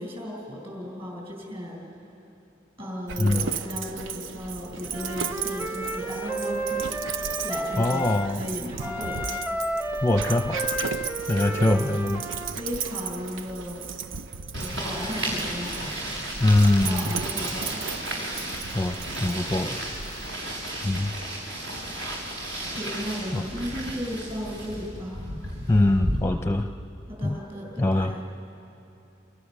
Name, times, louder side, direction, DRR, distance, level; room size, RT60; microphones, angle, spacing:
voice 1, 0.0-1.8 2.8-7.2 7.4-8.0 8.4-9.2 11.6-11.8 12.6-13.9 14.5-15.8 16.8-17.8 22.7-25.3 27.1-28.2, equal, 30° right, -1 dB, 7.4 m, -35 dB
Dog, 3.1-20.3, right 6 dB, 85° right, 0.7 m, -35 dB
Wind instrument woodwind instrument, 4.9-8.3 8.8-12.6, right 1 dB, 10° right, 1.0 m, -32 dB
voice 2, 7.8-8.4 10.0-10.6 11.3-12.2 16.4-17.1 18.7-19.8 20.8-21.1 23.3-23.4 25.7-26.7 27.2-27.4 27.8-28.1, left 2 dB, 15° left, 5 dB, 0.6 m, -23 dB
sound 1, 14.5-26.2, right 1 dB, 65° right, 6.9 m, -33 dB
29.5 x 28.0 x 6.8 m, 2.8 s
head